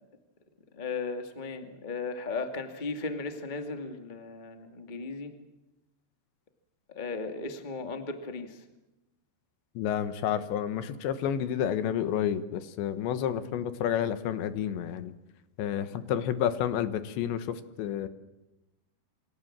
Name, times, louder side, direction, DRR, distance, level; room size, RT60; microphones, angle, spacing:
voice 1, 0.7-5.3 6.9-8.6 15.8-15.9, left 3 dB, 50° left, 6 dB, 0.5 m, -36 dB
voice 2, 9.8-15.1 15.6-18.1, left 9 dB, 75° left, 11 dB, 3.4 m, -30 dB
28.0 x 25.0 x 7.5 m, 0.99 s
omnidirectional pair, 5.4 m